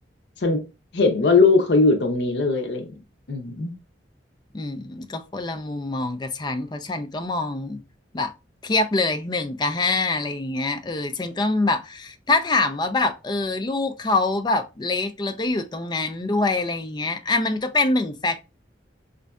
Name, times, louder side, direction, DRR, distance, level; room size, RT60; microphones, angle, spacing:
voice 1, 0.9-2.9 3.3-3.7, left 3 dB, 70° left, 0.6 m, -19 dB
voice 2, 4.5-7.8 8.1-8.3 8.6-18.5, left 2 dB, 25° left, 0.4 m, -25 dB
5.0 x 2.6 x 2.2 m
head